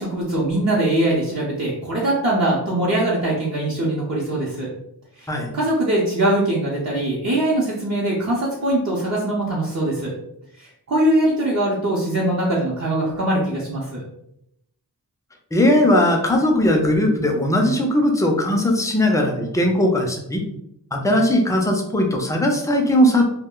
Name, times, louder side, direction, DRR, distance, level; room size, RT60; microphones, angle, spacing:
voice 1, 0.0-4.7 5.2-5.3 5.5-10.1 10.5-14.0, right 1 dB, 45° right, -6 dB, 0.6 m, -22 dB
voice 2, 15.5-20.4 20.9-23.3, left 1 dB, 10° left, 2 dB, 0.4 m, -18 dB
2.3 x 2.1 x 3.6 m, 0.78 s
wide cardioid pair, 100°, 39 cm